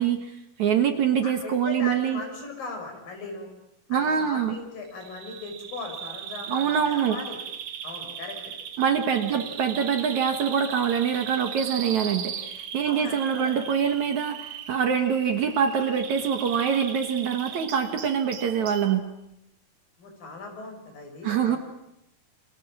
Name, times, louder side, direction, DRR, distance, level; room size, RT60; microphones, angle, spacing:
voice 1, 0.0-2.2 3.9-4.6 6.5-7.2 8.8-19.1 21.2-21.6, right 7 dB, 60° right, 6 dB, 2.6 m, -25 dB
voice 2, 1.2-3.5 3.9-7.4 7.8-8.4 9.3-9.5 12.9-13.5 20.0-21.6, left 3 dB, 65° left, 3 dB, 7.5 m, -38 dB
Bird vocalization bird call bird song, 5.0-19.0, right 8 dB, 80° right, 3.6 m, -38 dB
28.5 x 27.0 x 7.6 m, 0.83 s
omnidirectional pair, 4.4 m